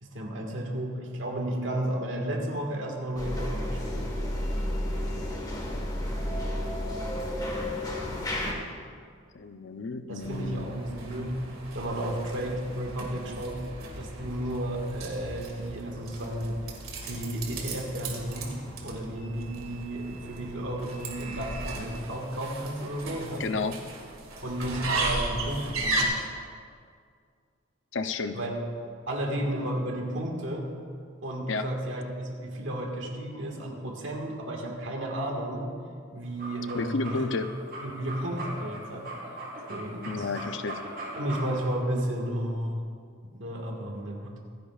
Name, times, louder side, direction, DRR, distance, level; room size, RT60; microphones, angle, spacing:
voice 1, 0.0-4.0 10.1-11.5 11.7-13.6 13.9-16.6 17.0-23.4 24.4-26.3 28.3-28.5 29.1-30.7 31.2-35.7 36.1-37.2 37.8-39.4 39.7-40.3 41.2-42.8 43.3-44.3, right 1 dB, 70° right, 0 dB, 1.8 m, -33 dB
sound 1, 3.2-8.5, left 1 dB, 20° left, 1.5 m, -31 dB
voice 2, 9.3-10.7 23.4-23.8 27.9-28.4 31.5-31.6 36.7-37.5 40.0-40.8, left 3 dB, 65° left, 9 dB, 0.6 m, -31 dB
sound 2, 10.2-26.0, right 2 dB, 90° right, 2.1 m, -36 dB
sound 3, 36.2-41.7, right 1 dB, 50° right, 3.5 m, -39 dB
26.5 x 10.0 x 2.4 m, 2.1 s
head